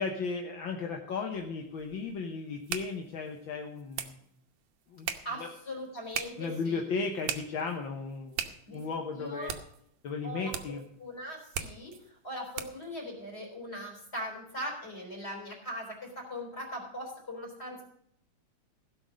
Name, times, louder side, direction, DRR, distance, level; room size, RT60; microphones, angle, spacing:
voice 1, 0.0-4.2 4.9-5.5 6.4-9.5 10.0-10.8, left 4 dB, 60° left, 3 dB, 1.4 m, -35 dB
sound 1, 1.3-12.9, right 9 dB, 70° right, 2.0 m, -42 dB
voice 2, 5.2-6.8 8.7-8.8 9.1-9.5 10.2-17.8, equal, 20° left, 0 dB, 3.8 m, -40 dB
16.0 x 6.3 x 6.3 m, 0.74 s
omnidirectional pair, 3.4 m